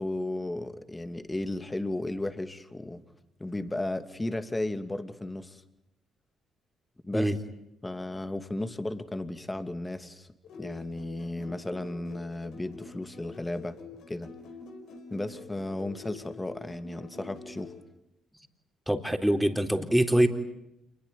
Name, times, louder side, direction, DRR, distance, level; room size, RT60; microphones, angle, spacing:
voice 1, 0.0-3.0 3.4-5.6 7.0-7.3 7.8-10.3 10.6-13.8 14.1-14.3 15.1-17.7, left 1 dB, 15° left, 9 dB, 2.6 m, -34 dB
sound 1, 10.4-17.8, left 3 dB, 70° left, 4.6 m, -46 dB
voice 2, 18.9-20.3, right 1 dB, 5° right, 5 dB, 3.9 m, -24 dB
28.5 x 21.5 x 9.2 m, 0.84 s
hypercardioid pair, 50°, 0 cm